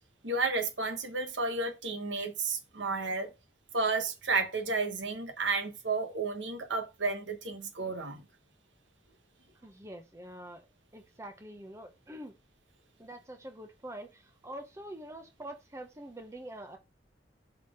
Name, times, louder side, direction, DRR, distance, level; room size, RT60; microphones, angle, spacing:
voice 1, 0.2-3.3 3.7-8.3, right 3 dB, 85° right, 1.3 m, -32 dB
voice 2, 9.6-10.7 10.9-12.3 13.0-16.8, right 1 dB, 15° right, 0.8 m, -45 dB
5.8 x 4.1 x 4.9 m
head